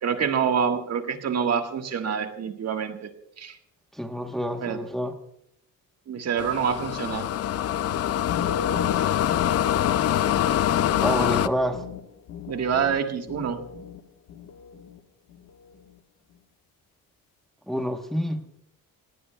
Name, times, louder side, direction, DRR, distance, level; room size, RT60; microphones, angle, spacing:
voice 1, 0.0-3.1 3.4-3.6 4.6-4.8 6.1-7.3 12.5-13.6, right 7 dB, 50° right, 5 dB, 1.5 m, -26 dB
voice 2, 3.9-5.1 11.0-11.8 17.7-18.4, equal, ahead, 4 dB, 0.9 m, -28 dB
sound 1, 6.4-11.5, left 11 dB, 45° left, 0.5 m, -24 dB
sound 2, 8.2-14.0 14.3-15.0 15.3-15.7, left 7 dB, 70° left, 1.3 m, -36 dB
27.5 x 18.0 x 2.2 m, 0.73 s
cardioid pair, 175°, 34 cm